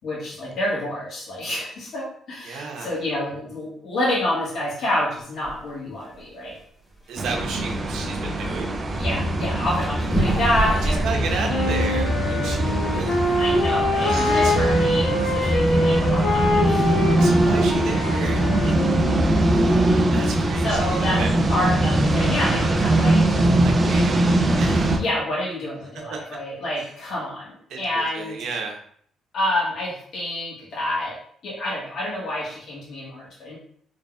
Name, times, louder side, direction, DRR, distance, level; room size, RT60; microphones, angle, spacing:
voice 1, 0.0-6.6 9.0-11.7 13.4-16.9 18.6-19.2 19.6-20.3 20.6-21.2 21.5-23.2 25.0-28.4 29.3-31.2 31.4-33.6, left 1 dB, 65° left, -5 dB, 1.4 m, -28 dB
voice 2, 2.4-2.9 7.1-8.8 10.8-13.2 14.0-14.5 17.2-18.8 19.3-19.7 20.1-21.4 23.6-25.0 26.1-26.2 26.6-26.9 27.7-27.8 28.1-28.8, right 4 dB, 80° right, 2 dB, 0.7 m, -33 dB
sound 1, 5.4-5.7 6.1-6.5 6.9-7.0 7.4-7.5 9.8-12.2 12.6-12.7 13.1-13.5, right 2 dB, 5° left, 1.4 m, -27 dB
sound 2, 7.2-25.0, right 1 dB, 35° right, 0.6 m, -21 dB
Wind instrument woodwind instrument, 11.5-19.5, left 1 dB, 80° left, 0.7 m, -24 dB
3.9 x 3.1 x 2.3 m, 0.63 s
cardioid pair, 90°, 0 cm